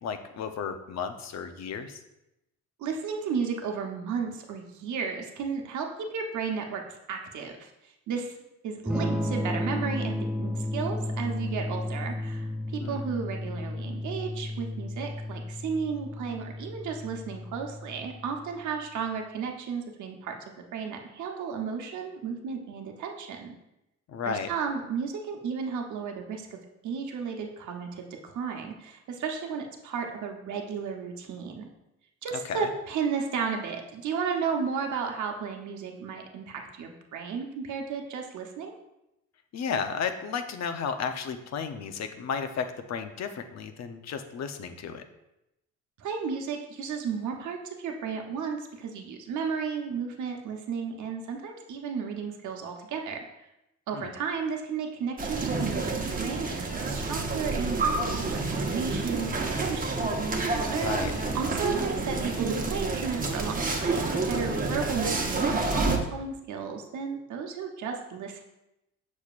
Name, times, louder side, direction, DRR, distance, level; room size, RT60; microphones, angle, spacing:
voice 1, 0.0-2.0 12.8-13.0 24.1-24.5 32.4-32.7 39.5-45.0 53.9-54.1 60.7-61.1, left 6 dB, 60° left, 7 dB, 0.8 m, -33 dB
voice 2, 2.8-8.4 8.6-23.5 24.3-26.6 26.8-31.7 32.2-38.7 46.0-53.2 53.9-60.4 60.7-61.0 61.3-68.4, right 6 dB, 75° right, 2 dB, 1.0 m, -33 dB
Electric guitar / Strum, 8.9-18.6, left 1 dB, 5° right, 0.3 m, -33 dB
sound 1, 55.2-66.0, right 3 dB, 30° right, 1.1 m, -29 dB
7.0 x 6.3 x 2.5 m, 0.90 s
cardioid pair, 90°, 30 cm